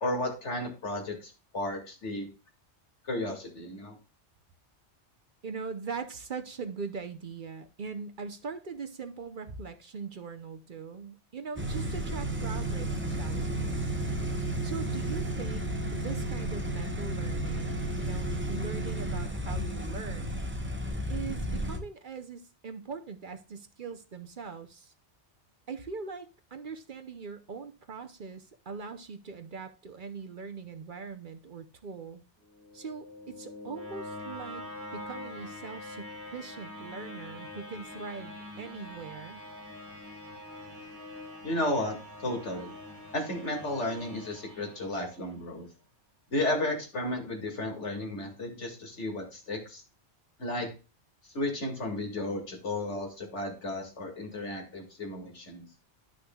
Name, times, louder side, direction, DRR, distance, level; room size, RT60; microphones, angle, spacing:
voice 1, 0.0-2.3 3.0-4.0 40.6-40.7 41.4-42.7 43.1-45.7 46.3-49.8 50.4-50.7 51.2-55.7, left 1 dB, 85° left, 2.5 m, -33 dB
voice 2, 5.4-13.9 14.6-15.7 15.9-20.4 21.1-24.9 25.7-32.2 32.7-34.6 34.9-39.4, right 5 dB, 50° right, 0.9 m, -41 dB
sound 1, 11.6-21.8, right 1 dB, 10° right, 1.0 m, -32 dB
sound 2, 32.4-45.4, left 1 dB, 10° left, 4.3 m, -44 dB
11.5 x 6.4 x 2.3 m
omnidirectional pair, 1.2 m